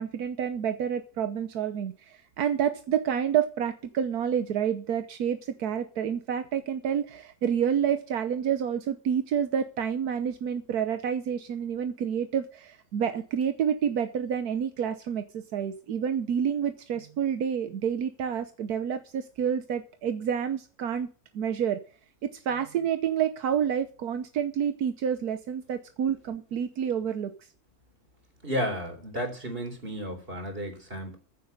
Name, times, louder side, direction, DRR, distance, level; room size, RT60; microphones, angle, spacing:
voice 1, 0.0-21.1 21.3-21.8 22.2-27.3, right 8 dB, 80° right, 9 dB, 1.4 m, -29 dB
voice 2, 28.4-31.2, equal, 35° right, 5 dB, 4.0 m, -33 dB
14.5 x 7.6 x 5.4 m, 0.39 s
omnidirectional pair, 1.6 m